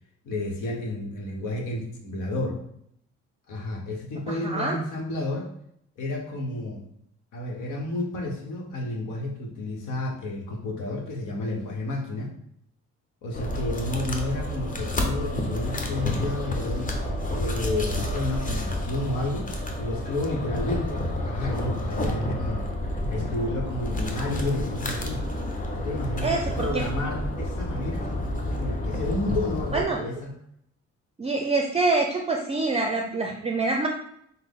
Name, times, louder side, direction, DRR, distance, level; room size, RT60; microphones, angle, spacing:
voice 1, 0.2-2.6 3.5-5.5 6.0-6.8 7.3-12.3 13.2-17.0 17.3-19.5 19.8-22.7 23.1-25.2 25.7-30.3, left 2 dB, 90° left, 1 dB, 1.0 m, -31 dB
voice 2, 4.3-4.8 26.2-26.8 29.7-30.0 31.2-33.9, right 3 dB, 20° right, 2 dB, 0.4 m, -26 dB
sound 1, 13.3-29.8, left 1 dB, 25° left, 0.8 m, -30 dB
5.7 x 2.0 x 3.6 m, 0.70 s
cardioid pair, 90°, 30 cm